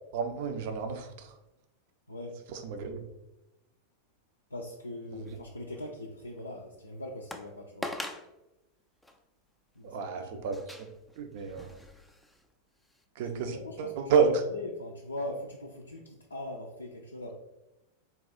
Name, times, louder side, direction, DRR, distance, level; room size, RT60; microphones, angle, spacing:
voice 1, 0.1-1.3 2.5-3.1 5.1-5.3 9.8-10.9 11.2-11.8 13.2-14.4, right 6 dB, 50° right, 6 dB, 0.5 m, -30 dB
voice 2, 2.1-2.4 4.5-7.9 9.8-10.5 13.2-13.9 14.2-17.4, left 1 dB, 80° left, -1 dB, 0.4 m, -41 dB
sound 1, 5.3-5.8 6.4-6.5 7.3-7.5 7.8-8.3 9.0-9.2 10.5-12.5 12.9-13.0, left 1 dB, 5° left, 0.4 m, -42 dB
3.6 x 2.3 x 4.1 m, 0.96 s
figure-of-eight pair, 90°, 0 cm